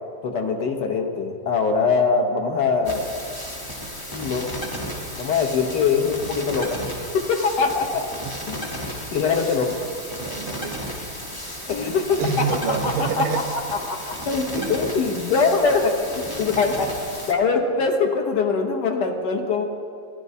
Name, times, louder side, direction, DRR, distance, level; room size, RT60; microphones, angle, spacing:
voice 1, 0.2-3.0 4.1-4.5 5.2-6.7 7.1-8.2 8.5-8.6 9.1-9.7 11.7-12.4 12.8-13.3 13.9-16.1 16.4-16.9 17.3-19.6, left 5 dB, 65° left, 3 dB, 1.4 m, -22 dB
sound 1, 2.8-17.3, equal, 20° left, 0.5 m, -34 dB
voice 2, 10.2-11.0 12.2-13.5 14.5-14.8 16.4-16.5, right 6 dB, 85° right, 7 dB, 1.5 m, -27 dB
16.0 x 11.0 x 2.7 m, 2.3 s
omnidirectional pair, 2.1 m